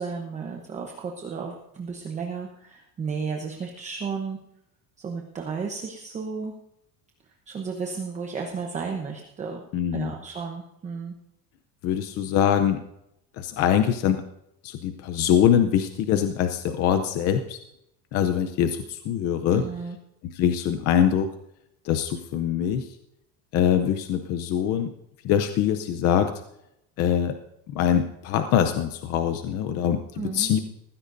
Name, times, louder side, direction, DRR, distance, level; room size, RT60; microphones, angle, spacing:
voice 1, 0.0-4.4 5.0-6.5 7.5-9.7 9.9-11.1 19.5-20.0 30.1-30.5, right 5 dB, 15° right, 1 dB, 0.9 m, -33 dB
voice 2, 9.7-10.1 11.8-12.8 13.4-14.2 14.6-17.6 18.1-19.6 20.3-21.3 21.8-22.9 23.5-24.9 25.2-26.3 27.0-27.4 27.7-30.6, left 9 dB, 35° left, 8 dB, 0.7 m, -23 dB
19.5 x 15.5 x 2.6 m, 0.82 s
cardioid pair, 175°, 41 cm